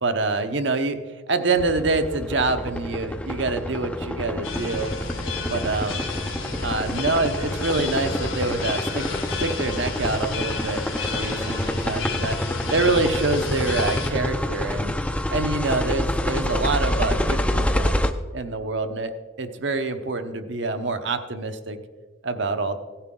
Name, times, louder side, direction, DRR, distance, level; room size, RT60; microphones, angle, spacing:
voice 1, 0.0-1.0 1.3-4.9 5.5-6.0 6.6-9.0 9.4-12.4 12.7-14.9 15.3-17.9 18.3-19.1 19.4-21.8 22.2-22.8, right 3 dB, 65° right, 7 dB, 0.9 m, -26 dB
sound 1, 1.6-18.1, left 1 dB, 5° left, 0.5 m, -28 dB
sound 2, 4.4-14.1, left 3 dB, 85° left, 2.7 m, -31 dB
16.5 x 10.0 x 3.8 m, 1.4 s
head